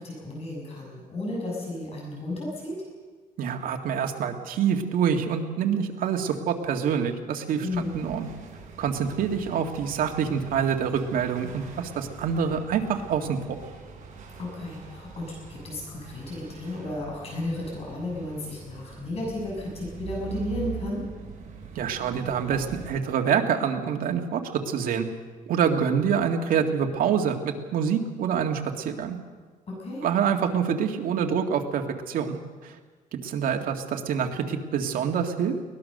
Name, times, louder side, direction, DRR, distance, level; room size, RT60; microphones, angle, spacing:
voice 1, 0.0-2.7 7.6-8.0 14.4-21.1 29.7-30.1, left 2 dB, 45° left, -2 dB, 7.2 m, -33 dB
voice 2, 3.4-7.7 7.9-8.3 8.8-13.6 21.8-25.1 25.5-29.2 30.0-32.4 32.6-32.7 33.1-35.5, right 7 dB, 85° right, 4 dB, 2.0 m, -26 dB
sound 1, 7.7-23.0, right 6 dB, 55° right, 4.8 m, -43 dB
22.5 x 18.5 x 6.7 m, 1.4 s
cardioid pair, 150°, 14 cm